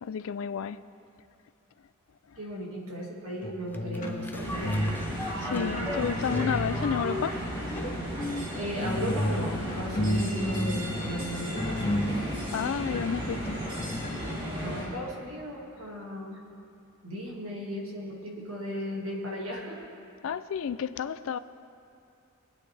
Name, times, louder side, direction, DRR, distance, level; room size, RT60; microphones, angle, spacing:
voice 1, 0.0-0.8 5.4-7.6 12.5-13.6 20.2-21.4, left 7 dB, 70° left, 0.4 m, -31 dB
voice 2, 2.4-5.0 5.5-6.8 8.5-12.1 14.6-16.4 17.0-19.9, equal, 85° right, 2.0 m, -36 dB
sound 1, 3.4-4.9 5.2-7.0 7.5-8.0 8.5-14.1, left 1 dB, 40° left, 1.5 m, -32 dB
sound 2, 3.7-12.3 12.7-12.8, left 2 dB, 10° left, 0.5 m, -40 dB
sound 3, 4.4-14.9, equal, 25° right, 2.6 m, -35 dB
21.5 x 9.2 x 3.3 m
head